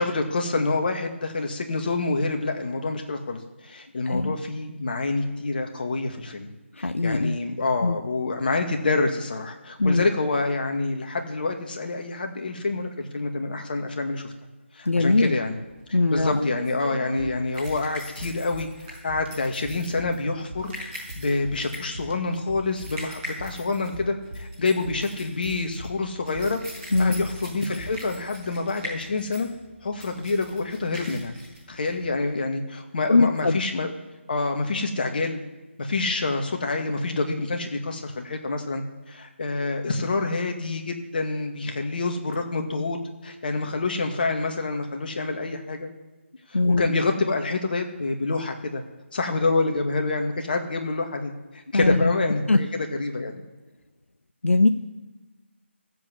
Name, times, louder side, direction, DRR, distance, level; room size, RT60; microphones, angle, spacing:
voice 1, 0.0-6.5 6.8-14.3 14.7-15.6 15.9-18.7 19.0-20.7 21.2-26.6 27.0-29.5 29.8-31.3 31.7-33.9 34.3-35.4 35.8-43.0 43.2-45.9 46.5-48.8 49.1-53.4, left 3 dB, 45° left, 4 dB, 2.1 m, -27 dB
voice 2, 6.8-7.3 7.8-8.0 9.8-10.1 14.9-15.3 15.9-16.5 26.9-27.3 33.1-33.6 46.5-46.9 51.7-52.1 52.5-52.6 54.4-54.7, left 3 dB, 75° left, 9 dB, 0.7 m, -21 dB
sound 1, 15.6-32.3, equal, 15° right, 5.3 m, -42 dB
sound 2, 17.2-28.3, equal, 65° right, 2.6 m, -42 dB
15.0 x 7.8 x 7.9 m, 1.2 s
figure-of-eight pair, 155°, 7 cm